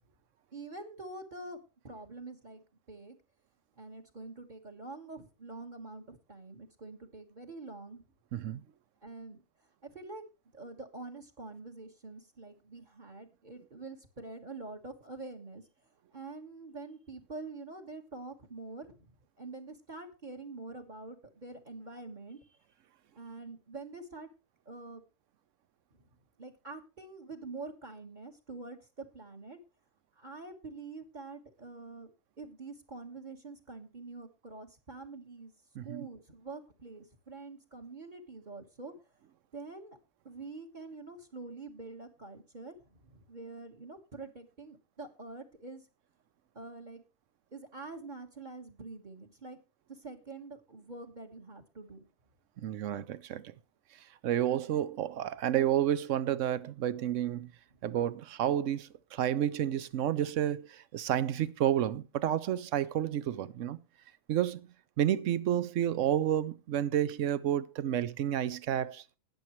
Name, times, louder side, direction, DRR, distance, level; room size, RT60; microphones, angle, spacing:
voice 1, 0.5-3.2 3.8-8.0 9.0-9.4 9.8-10.2 10.5-15.6 16.1-22.6 23.1-24.3 24.6-25.0 26.4-29.6 30.2-32.1 32.4-35.5 35.8-38.9 39.5-40.0 40.2-45.9 46.5-47.0 47.5-49.6 49.9-52.1 57.8-57.9, right 3 dB, 35° right, 1.6 m, -46 dB
voice 2, 35.8-36.1 52.6-53.5 54.2-57.5 57.8-63.8 64.3-64.7 65.0-69.0, right 11 dB, 70° right, 1.1 m, -30 dB
19.5 x 7.1 x 3.1 m
omnidirectional pair, 1.3 m